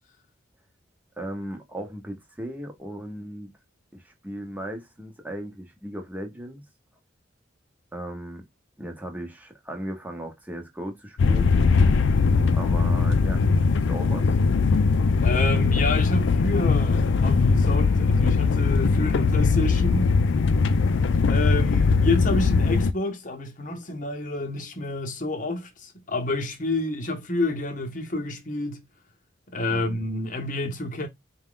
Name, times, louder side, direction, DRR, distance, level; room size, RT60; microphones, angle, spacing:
voice 1, 1.2-3.5 3.9-6.6 7.9-8.4 8.8-11.5 12.5-14.3 29.7-30.0, right 1 dB, 10° right, 0.9 m, -37 dB
sound 1, 11.2-22.9, left 4 dB, 75° left, 0.4 m, -20 dB
voice 2, 15.2-20.1 21.3-28.8 29.5-31.1, left 2 dB, 45° left, 0.9 m, -29 dB
4.3 x 2.3 x 3.7 m
head